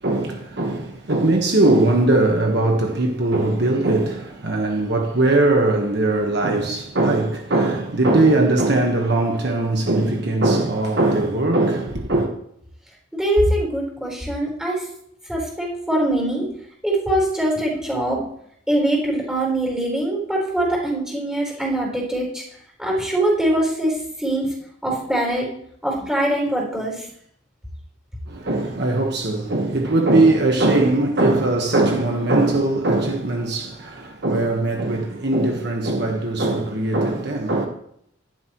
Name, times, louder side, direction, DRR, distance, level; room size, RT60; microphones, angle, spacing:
voice 1, 0.0-12.3 28.3-37.7, right 2 dB, 55° right, 1.4 m, -20 dB
voice 2, 13.1-14.8 15.3-16.5 16.8-18.3 18.7-22.4 22.8-24.5 24.8-25.5 25.8-27.1, right 1 dB, 5° right, 4.3 m, -22 dB
14.0 x 12.0 x 3.1 m
head